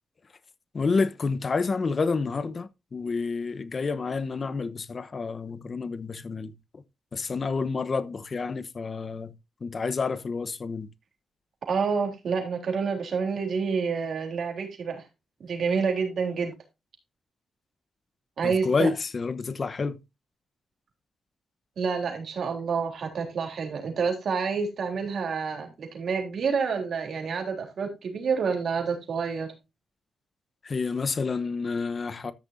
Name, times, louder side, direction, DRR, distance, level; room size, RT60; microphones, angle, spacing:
voice 1, 0.7-6.8 7.1-9.3 9.6-10.9 18.4-20.0 30.6-32.3, left 4 dB, 45° left, 0.9 m, -29 dB
voice 2, 11.7-15.0 15.4-16.5 18.4-18.9 21.8-29.5, right 5 dB, 65° right, 3.5 m, -28 dB
13.5 x 6.5 x 2.7 m
cardioid pair, 60°, 0 cm